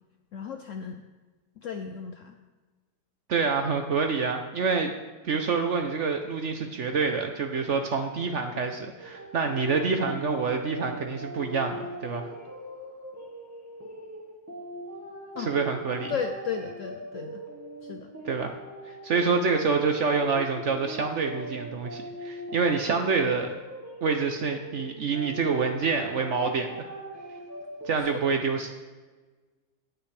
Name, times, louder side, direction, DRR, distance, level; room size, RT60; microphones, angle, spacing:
voice 1, 0.3-1.0 1.6-2.4 15.4-15.5 16.1-17.4 17.8-18.1, left 6 dB, 70° left, 6 dB, 0.7 m, -34 dB
voice 2, 3.3-4.9 5.2-12.3 15.5-16.1 18.3-18.5 18.8-23.5 24.0-26.9 27.8-28.7, right 5 dB, 60° right, 4 dB, 0.8 m, -27 dB
sound 1, 9.0-28.0, right 1 dB, 10° right, 1.2 m, -41 dB
18.0 x 6.0 x 3.3 m, 1.3 s
omnidirectional pair, 1.9 m